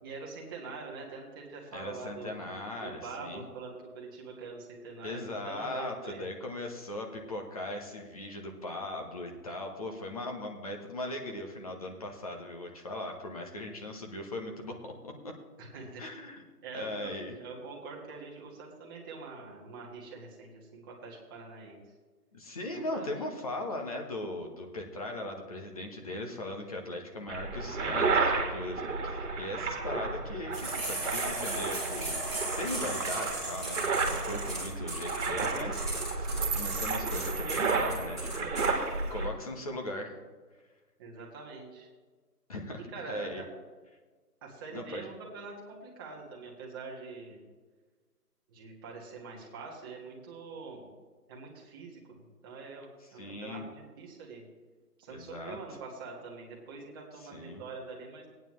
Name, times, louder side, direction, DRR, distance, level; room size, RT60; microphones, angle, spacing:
voice 1, 0.0-2.4 2.8-6.3 15.6-16.1 16.6-17.1 17.4-21.8 22.7-23.3 41.0-41.9 42.9-43.5 44.4-47.4 48.5-50.9 51.3-52.2 52.4-54.4 55.0-58.3, right 4 dB, 15° right, -3 dB, 1.5 m, -44 dB
voice 2, 1.7-3.4 5.0-15.3 16.0-16.4 16.7-17.3 22.3-35.9 36.2-38.5 39.1-40.2 42.5-43.4 44.7-45.1 53.1-53.7 55.1-55.6 57.3-57.6, left 1 dB, 25° left, 2 dB, 1.1 m, -39 dB
sound 1, 27.3-39.3, right 3 dB, 45° right, 1.8 m, -32 dB
sound 2, 30.5-38.7, right 2 dB, ahead, 1.5 m, -37 dB
sound 3, 33.5-33.6 33.9-34.0 34.2-34.4 34.6-34.8 35.4-35.6 35.9-38.3, right 7 dB, 90° right, 0.8 m, -39 dB
17.5 x 9.3 x 3.1 m, 1.4 s
figure-of-eight pair, 160°, 47 cm